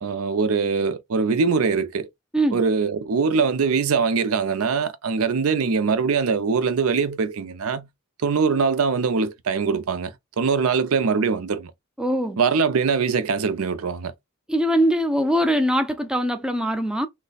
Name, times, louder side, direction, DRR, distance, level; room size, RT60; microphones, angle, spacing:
voice 1, 0.0-2.1 2.5-7.9 8.2-11.7 12.4-14.1, right 5 dB, 75° right, 0.5 m, -22 dB
voice 2, 12.0-12.4 14.5-17.1, equal, 5° right, 0.4 m, -22 dB
3.1 x 2.1 x 3.9 m
head